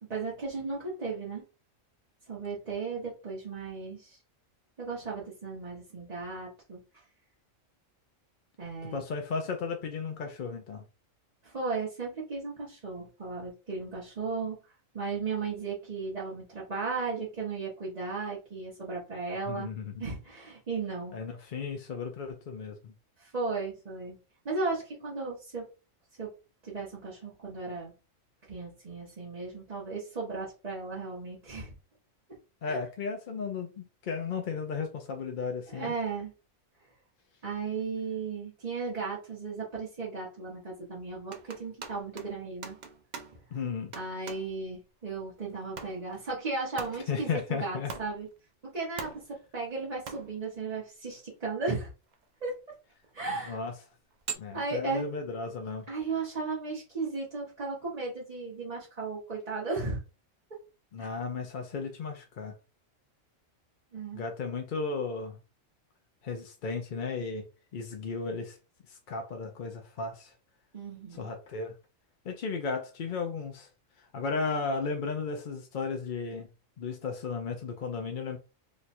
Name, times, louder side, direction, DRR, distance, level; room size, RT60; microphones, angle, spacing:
voice 1, 0.0-1.4 2.3-4.2 4.8-6.8 8.6-9.0 11.4-14.6 14.9-19.7 20.0-21.1 23.2-24.2 24.4-25.7 26.2-26.3 26.6-27.9 28.5-31.7 32.6-32.8 35.7-36.3 37.4-42.8 43.9-48.3 48.6-51.9 52.4-52.6 53.1-53.6 54.5-55.1 55.9-60.0 60.5-60.6 61.0-61.1 63.9-64.2 70.7-71.3, right 4 dB, 35° right, 1.0 m, -35 dB
voice 2, 8.8-10.8 19.5-20.0 21.1-22.9 32.6-35.9 43.5-43.9 47.1-47.9 53.5-53.7 54.4-55.9 60.9-62.6 64.1-65.4 66.2-67.5 67.7-68.6 68.9-70.3 71.1-71.7 72.2-73.7 74.0-76.5 76.8-78.4, left 4 dB, 55° left, 0.6 m, -35 dB
sound 1, 41.3-43.5 43.9-44.6 45.5-46.3 46.8-47.2 47.9-48.3 49.0-49.5 50.1-50.5 51.5-51.6 52.1-52.2 52.9-53.3 54.1-54.3, right 6 dB, 65° right, 0.4 m, -42 dB
3.1 x 2.3 x 4.2 m
omnidirectional pair, 1.4 m